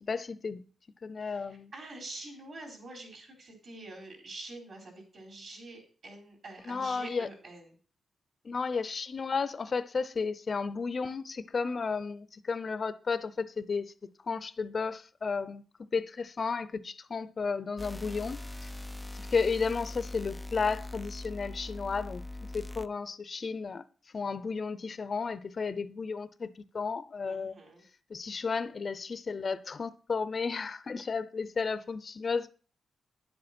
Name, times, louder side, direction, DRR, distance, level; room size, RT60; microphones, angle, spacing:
voice 1, 0.0-0.6 1.0-1.7 6.7-7.3 8.4-13.9 14.3-15.6 15.9-18.7 19.1-23.8 24.1-27.5 28.1-32.5, left 5 dB, 40° left, 0.7 m, -33 dB
voice 2, 1.2-7.7 27.2-27.8, right 2 dB, 50° right, 4.4 m, -46 dB
sound 1, 17.8-22.9, left 1 dB, 5° left, 0.4 m, -41 dB
10.5 x 7.9 x 4.4 m
wide cardioid pair, 135°, 0 cm